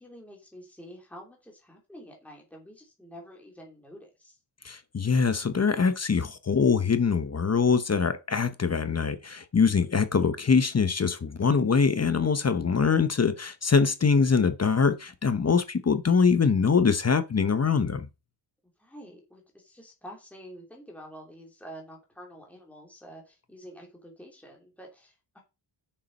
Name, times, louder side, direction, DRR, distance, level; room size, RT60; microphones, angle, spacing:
voice 1, 0.0-4.4 9.7-10.0 18.6-25.4, equal, 5° left, 2.9 m, -48 dB
voice 2, 4.6-18.1, left 5 dB, 30° left, 0.8 m, -23 dB
7.4 x 6.6 x 5.4 m
wide cardioid pair, 170°, 50 cm